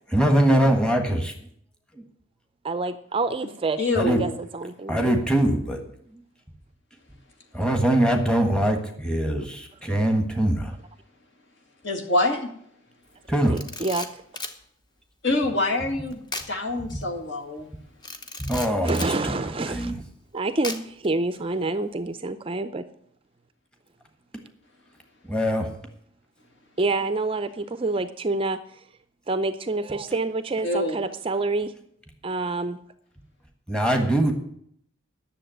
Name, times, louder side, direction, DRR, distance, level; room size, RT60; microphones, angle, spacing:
voice 1, 0.1-1.3 1.9-2.0 4.0-4.2 4.9-5.8 7.5-10.7 13.3-13.6 16.9-17.0 18.4-19.3 19.7-19.9 25.3-25.7 33.7-34.3, right 1 dB, 5° left, 4 dB, 1.5 m, -22 dB
voice 2, 2.6-5.1 13.5-14.2 18.8-19.9 20.3-22.9 26.8-28.6 29.3-31.7 32.2-32.8, right 3 dB, 25° right, 11 dB, 0.5 m, -27 dB
voice 3, 3.8-4.3 11.8-12.5 15.2-16.2 16.5-17.7 30.6-31.0, left 2 dB, 60° left, 3 dB, 2.0 m, -25 dB
Camera, 13.4-14.6 16.3-16.5 16.9-17.0 18.0-19.1 20.6-21.1, left 2 dB, 20° left, 0.8 m, -35 dB
10.0 x 7.1 x 9.1 m, 0.68 s
head